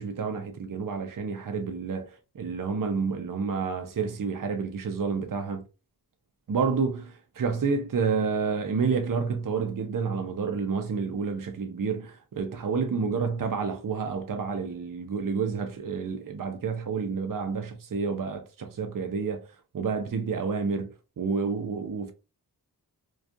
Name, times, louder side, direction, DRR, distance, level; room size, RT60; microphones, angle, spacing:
voice 1, 0.0-5.6 6.5-19.5 19.7-22.1, right 5 dB, 55° right, 0.6 m, -29 dB
2.3 x 2.3 x 2.6 m
wide cardioid pair, 45°, 41 cm